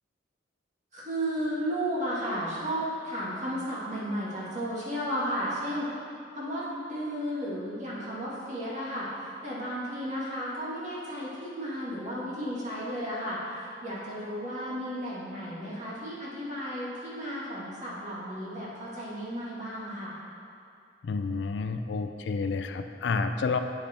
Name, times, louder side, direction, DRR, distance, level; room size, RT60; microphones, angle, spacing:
voice 1, 0.9-5.9 6.4-6.6 6.9-20.1, equal, 40° right, -7 dB, 1.9 m, -33 dB
voice 2, 21.0-23.6, left 4 dB, 75° left, 8 dB, 0.4 m, -30 dB
8.4 x 5.3 x 4.3 m, 2.5 s
head